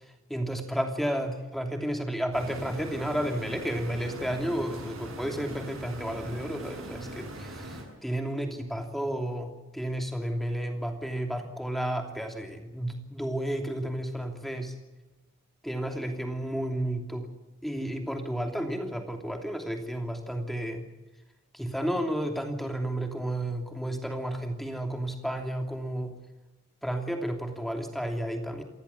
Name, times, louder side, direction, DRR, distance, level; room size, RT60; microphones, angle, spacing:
voice 1, 0.3-14.7 15.6-17.3 17.6-20.8 21.5-26.1 26.8-28.6, right 1 dB, ahead, 4 dB, 2.9 m, -32 dB
sound 1, 2.3-7.8, right 1 dB, 80° right, 7.9 m, -41 dB
28.0 x 15.5 x 8.3 m, 1.1 s
head